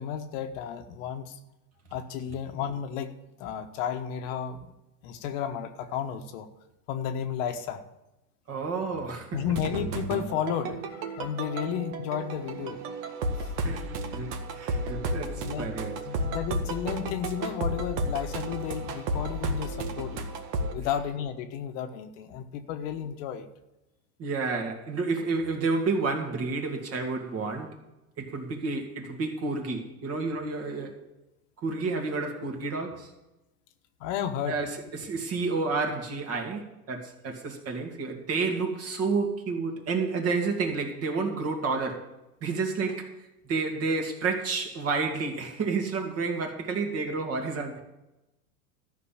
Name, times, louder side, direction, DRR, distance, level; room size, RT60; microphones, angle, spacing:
voice 1, 0.0-1.4 1.9-4.7 5.0-6.5 6.9-7.8 9.3-12.8 13.4-13.5 15.2-15.7 16.1-20.3 20.7-23.5 34.0-34.7, left 9 dB, 55° left, 7 dB, 1.3 m, -33 dB
voice 2, 8.5-9.4 13.6-16.3 24.2-27.8 28.2-31.0 31.6-33.1 34.5-42.1 42.4-43.1 43.5-47.8, right 4 dB, 30° right, 3 dB, 2.4 m, -30 dB
sound 1, 9.4-20.7, right 1 dB, 60° right, 1.9 m, -33 dB
13.5 x 6.0 x 8.7 m, 0.96 s
supercardioid pair, 135°, 45 cm